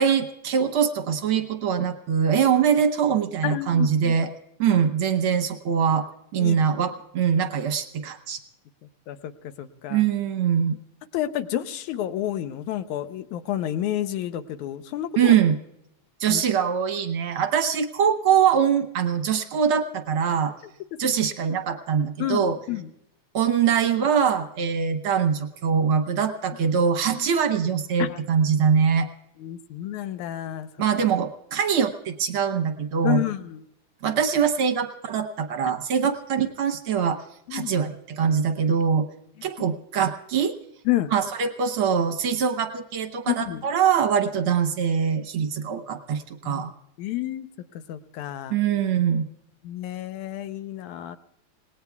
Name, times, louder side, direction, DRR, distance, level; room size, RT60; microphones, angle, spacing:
voice 1, 0.0-4.3 4.6-6.1 6.3-8.4 9.9-10.8 15.2-15.6 16.2-20.5 21.0-22.6 23.3-29.1 30.8-33.2 34.0-37.2 37.5-39.1 39.4-40.5 41.1-46.7 48.5-49.2, right 7 dB, 65° right, 7 dB, 1.4 m, -23 dB
voice 2, 3.4-4.2 4.7-4.8 6.4-6.6 9.1-10.0 11.1-15.4 16.3-16.4 22.0-22.9 27.1-27.3 28.0-28.2 29.4-30.7 33.0-33.6 37.5-37.7 40.9-41.1 43.3-43.7 46.4-46.6 47.0-47.5 47.9-48.6 49.6-51.2, left 13 dB, 90° left, 10 dB, 2.3 m, -30 dB
27.5 x 19.0 x 2.3 m, 0.78 s
omnidirectional pair, 3.3 m